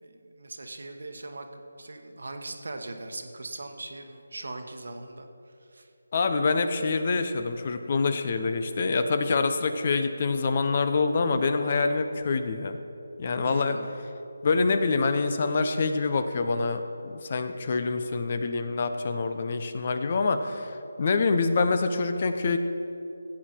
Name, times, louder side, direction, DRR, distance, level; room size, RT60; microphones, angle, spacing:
voice 1, 0.0-1.4 1.8-5.3 5.7-5.9 13.4-13.9, right 2 dB, 65° right, 5 dB, 1.2 m, -40 dB
voice 2, 6.1-12.8 13.2-13.8 14.4-22.6, left 4 dB, 40° left, 9 dB, 0.7 m, -26 dB
16.0 x 8.4 x 4.5 m, 2.8 s
figure-of-eight pair, 160°, 0 cm